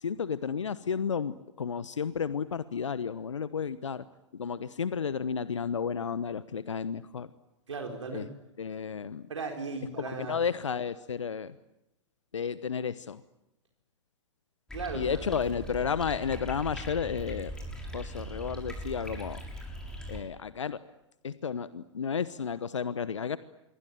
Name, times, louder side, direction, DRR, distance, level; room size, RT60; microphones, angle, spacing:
voice 1, 0.0-4.0 4.3-7.3 8.1-8.2 8.6-9.3 10.3-11.5 12.3-13.2 14.9-17.5 17.9-19.4 20.1-20.8 21.2-23.4, left 6 dB, 75° left, 15 dB, 1.0 m, -32 dB
voice 2, 7.7-8.3 9.3-10.4 14.7-15.1 15.4-15.5, right 4 dB, 75° right, 2 dB, 4.4 m, -37 dB
sound 1, 14.7-20.2, equal, 5° left, 6.6 m, -40 dB
26.5 x 23.0 x 9.2 m, 0.91 s
figure-of-eight pair, 105°, 16 cm